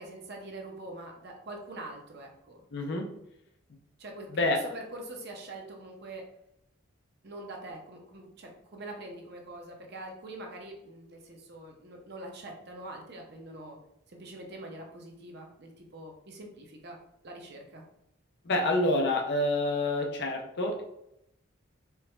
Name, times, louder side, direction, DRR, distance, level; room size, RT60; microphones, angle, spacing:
voice 1, 0.0-2.6 4.0-4.4 4.7-6.3 7.2-13.8 14.1-17.0 17.2-17.8, right 1 dB, 50° right, 1 dB, 0.7 m, -44 dB
voice 2, 2.7-3.1 4.3-4.6 18.4-20.8, left 2 dB, 55° left, 3 dB, 0.5 m, -27 dB
4.5 x 2.2 x 3.3 m, 0.80 s
head